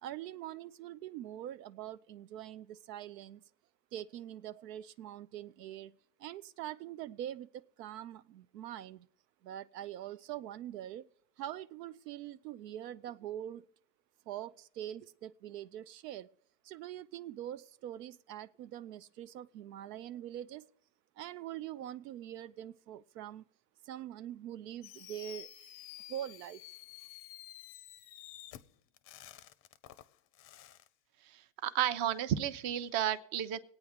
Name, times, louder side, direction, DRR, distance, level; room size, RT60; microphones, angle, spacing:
voice 1, 0.0-3.4 3.9-5.9 6.2-9.1 9.4-11.1 11.4-13.6 14.3-16.3 16.6-20.7 21.2-23.5 23.8-25.5 26.1-26.6, right 12 dB, 90° right, 0.6 m, -44 dB
Fireworks, 24.8-30.9, left 13 dB, 30° left, 0.5 m, -51 dB
voice 2, 31.3-33.6, right 10 dB, 45° right, 0.8 m, -32 dB
22.5 x 8.9 x 3.6 m
supercardioid pair, 120°, 48 cm